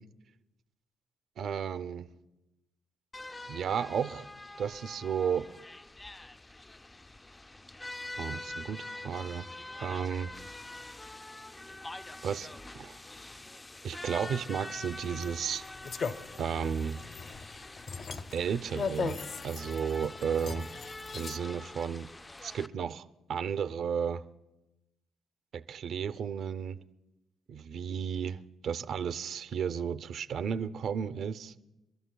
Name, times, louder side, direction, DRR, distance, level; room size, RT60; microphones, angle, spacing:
voice 1, 1.4-2.1 3.5-4.3 4.6-5.5 8.2-9.5 9.8-10.3 12.2-12.5 12.7-13.0 13.8-15.6 16.4-17.0 18.3-19.2 19.4-20.7 21.1-22.1 22.4-24.2 25.5-26.8 27.5-31.5, right 7 dB, 65° right, 0.5 m, -33 dB
sound 1, 3.1-22.7, left 2 dB, 15° left, 0.4 m, -45 dB
sound 2, 15.0-21.4, left 5 dB, 55° left, 0.7 m, -39 dB
30.0 x 12.5 x 2.3 m
cardioid pair, 90°, 0 cm